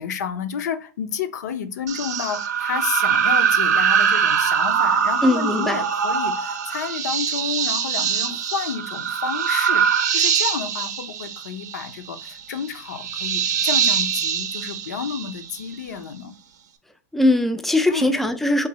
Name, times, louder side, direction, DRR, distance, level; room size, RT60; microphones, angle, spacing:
voice 1, 0.0-16.3 17.9-18.2, left 7 dB, 80° left, 0.6 m, -30 dB
sound 1, 1.9-15.7, right 7 dB, 85° right, 0.6 m, -23 dB
voice 2, 5.2-5.8 17.1-18.7, left 1 dB, ahead, 0.3 m, -20 dB
3.7 x 2.6 x 3.0 m
hypercardioid pair, 130°, 9 cm